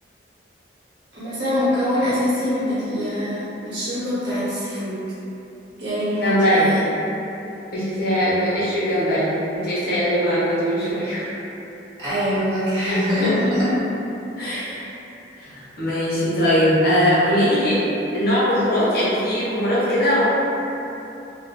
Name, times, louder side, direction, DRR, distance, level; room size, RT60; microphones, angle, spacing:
voice 1, 1.1-5.0 5.8-6.8 8.5-8.6 12.0-13.7, equal, 75° right, -11 dB, 1.1 m, -24 dB
voice 2, 6.2-6.7 7.7-11.3 12.8-13.4 14.4-14.9 15.4-17.9 18.1-20.2, equal, 55° left, -10 dB, 0.9 m, -21 dB
2.6 x 2.1 x 2.8 m, 2.9 s
head